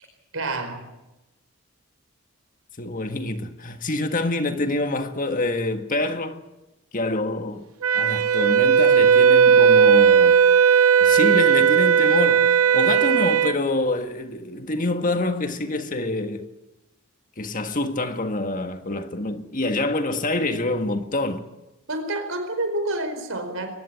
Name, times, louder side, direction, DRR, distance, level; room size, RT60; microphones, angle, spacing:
voice 1, 0.3-0.9 21.9-23.7, right 2 dB, 65° right, 4.7 m, -28 dB
voice 2, 2.8-6.4 6.9-7.6 7.9-10.4 11.0-12.5 12.7-16.5 17.4-21.5, left 2 dB, 40° left, 1.6 m, -26 dB
Wind instrument woodwind instrument, 7.8-13.5, right 7 dB, 80° right, 0.9 m, -16 dB
23.0 x 20.0 x 8.6 m
head